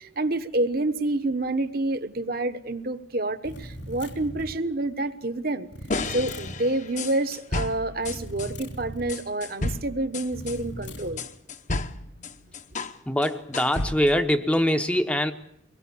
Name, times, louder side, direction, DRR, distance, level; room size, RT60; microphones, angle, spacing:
voice 1, 0.0-5.7 6.0-11.2, right 2 dB, 50° right, 1.1 m, -28 dB
sound 1, 3.4-4.6 5.7-6.6 8.0-9.2 10.3-11.2, equal, 70° left, 3.0 m, -39 dB
sound 2, 5.9-8.5 9.1-13.0 13.2-14.2, left 2 dB, 40° left, 1.0 m, -32 dB
voice 2, 13.0-15.3, equal, 5° left, 0.8 m, -23 dB
24.0 x 21.0 x 7.1 m
head